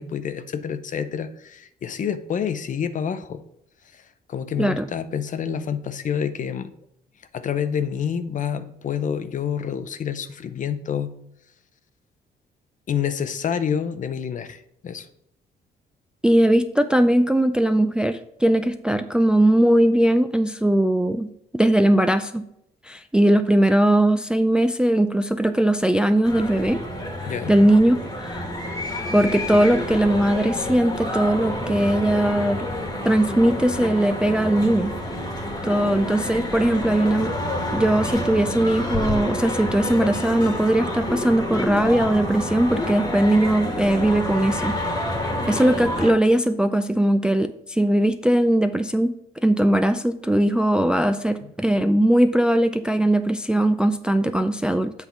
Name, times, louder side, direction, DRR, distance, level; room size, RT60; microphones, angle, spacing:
voice 1, 0.0-3.4 3.9-4.0 4.3-6.7 7.3-11.1 12.9-15.1 27.3-27.5, left 8 dB, 45° left, 11 dB, 0.7 m, -28 dB
voice 2, 16.2-21.3 21.5-22.4 22.9-26.8 27.2-28.4 29.1-32.7 33.0-34.9 35.6-37.3 37.7-44.8 45.2-49.1 49.4-54.9, right 1 dB, 5° right, 9 dB, 0.3 m, -20 dB
sound 1, 26.2-46.1, left 1 dB, 20° left, 1.4 m, -28 dB
8.2 x 3.5 x 5.6 m, 0.78 s
cardioid pair, 130°, 18 cm